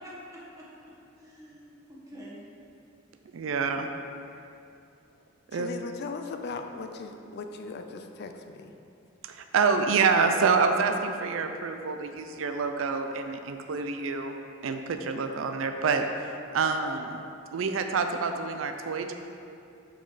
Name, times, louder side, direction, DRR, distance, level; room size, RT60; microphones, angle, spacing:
voice 1, 0.0-2.4, equal, 15° right, -7 dB, 1.4 m, -47 dB
voice 2, 3.3-3.9 5.5-5.7 9.2-14.3 14.6-16.1 16.5-17.2 17.5-19.1, right 5 dB, 85° right, 6 dB, 0.4 m, -27 dB
voice 3, 5.5-8.7, left 4 dB, 55° left, 5 dB, 0.4 m, -38 dB
6.0 x 5.0 x 4.1 m, 2.7 s
head